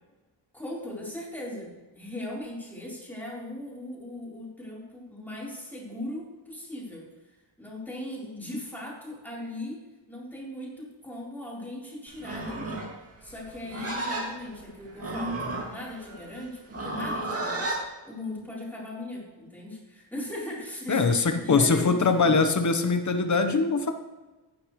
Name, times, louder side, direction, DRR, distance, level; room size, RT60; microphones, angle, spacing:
voice 1, 0.5-7.1 7.6-9.8 10.1-12.8 13.2-17.8 18.0-22.3, left 1 dB, 5° left, -6 dB, 4.2 m, -38 dB
Livestock farm animals working animals, 12.1-17.8, right 2 dB, 35° right, 2.2 m, -33 dB
voice 2, 20.9-23.9, left 4 dB, 40° left, 8 dB, 1.1 m, -22 dB
15.0 x 9.6 x 3.2 m, 1.2 s
wide cardioid pair, 130°, 43 cm